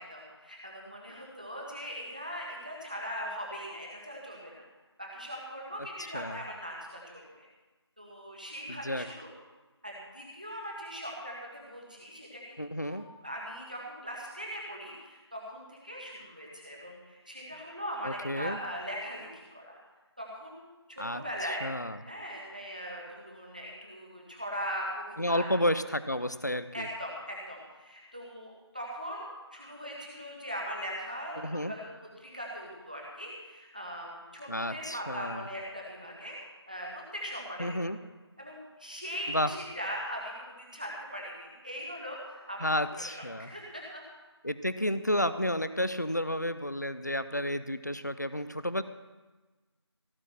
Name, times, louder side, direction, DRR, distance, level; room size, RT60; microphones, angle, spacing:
voice 1, 0.0-4.6 5.0-7.5 8.0-9.3 9.8-13.0 13.2-19.8 20.2-21.6 22.0-25.5 26.7-31.9 32.2-36.4 36.7-37.7 38.4-42.7 43.0-44.0, equal, 20° right, -3 dB, 1.6 m, -40 dB
voice 2, 8.7-9.0 12.6-13.1 18.0-18.6 21.0-21.2 21.6-22.0 25.2-26.9 31.4-31.7 34.5-35.5 37.6-38.0 39.3-39.5 42.6-43.5 44.4-48.8, left 1 dB, 40° left, 12 dB, 0.5 m, -31 dB
16.5 x 6.2 x 7.6 m, 1.2 s
figure-of-eight pair, 180°, 14 cm